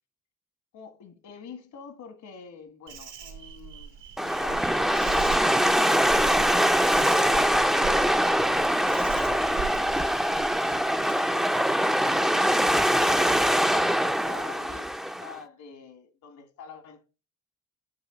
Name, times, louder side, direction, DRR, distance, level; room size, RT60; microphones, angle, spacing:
voice 1, 0.7-6.5 10.6-12.5 12.9-17.1, left 6 dB, 75° left, 1.8 m, -46 dB
Insect, 2.9-11.3, right 8 dB, 85° right, 1.8 m, -40 dB
sound 1, 4.2-15.3, equal, ahead, 0.5 m, -23 dB
8.8 x 3.9 x 5.0 m
cardioid pair, 90°, 30 cm